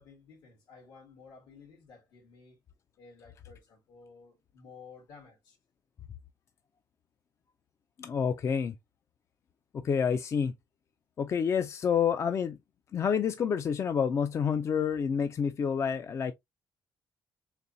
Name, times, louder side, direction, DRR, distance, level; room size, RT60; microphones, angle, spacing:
voice 1, 0.0-2.6 3.0-5.6, left 5 dB, 80° left, 2.2 m, -54 dB
voice 2, 8.0-8.8 9.7-10.5 11.2-12.6 12.9-16.3, left 7 dB, 40° left, 0.4 m, -28 dB
4.0 x 3.1 x 2.6 m
cardioid pair, 115°, 7 cm